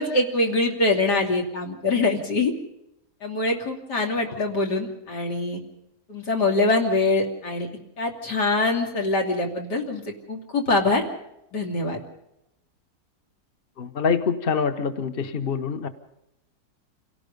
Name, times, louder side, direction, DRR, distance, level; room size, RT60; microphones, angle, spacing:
voice 1, 0.0-2.5 3.2-5.6 6.1-7.7 8.0-11.0 11.5-12.0, left 2 dB, 85° left, 1 dB, 3.5 m, -24 dB
voice 2, 13.8-15.9, left 5 dB, 40° left, 9 dB, 1.2 m, -25 dB
27.5 x 18.0 x 5.3 m, 0.85 s
omnidirectional pair, 1.7 m